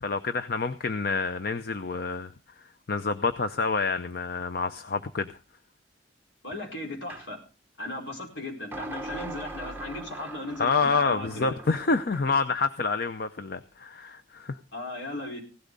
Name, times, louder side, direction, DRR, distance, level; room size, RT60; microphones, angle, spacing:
voice 1, 0.0-2.3 2.9-5.3 10.6-14.6, left 4 dB, 55° left, 10 dB, 0.6 m, -27 dB
voice 2, 6.4-7.4 7.8-11.5 14.7-15.4, left 1 dB, 80° left, 1 dB, 4.7 m, -36 dB
sound 1, 7.1-7.3 8.7-12.5, right 2 dB, 10° right, 0.8 m, -41 dB
16.5 x 12.0 x 3.9 m, 0.35 s
head